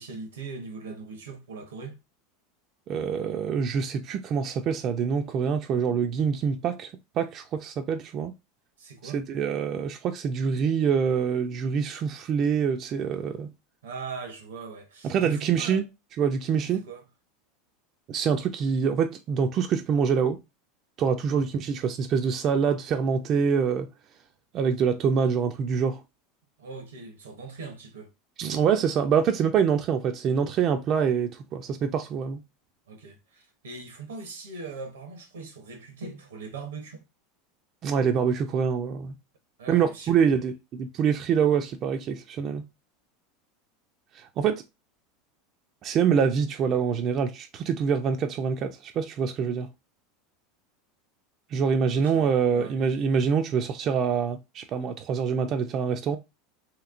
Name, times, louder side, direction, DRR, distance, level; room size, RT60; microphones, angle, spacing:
voice 1, 0.0-2.0 8.8-9.2 13.8-15.8 16.9-17.0 21.4-21.5 26.6-28.1 32.9-37.0 39.6-40.4 51.9-52.3 52.5-52.8, right 4 dB, 85° right, 0.8 m, -40 dB
voice 2, 2.9-6.9 7.2-8.3 9.0-13.5 15.0-15.8 16.2-16.8 18.1-20.4 21.0-23.9 24.5-26.0 28.4-32.4 37.8-39.1 39.7-42.6 44.1-44.6 45.8-49.7 51.5-56.2, right 6 dB, 45° right, 0.4 m, -25 dB
3.1 x 2.9 x 2.4 m
hypercardioid pair, 95°, 0 cm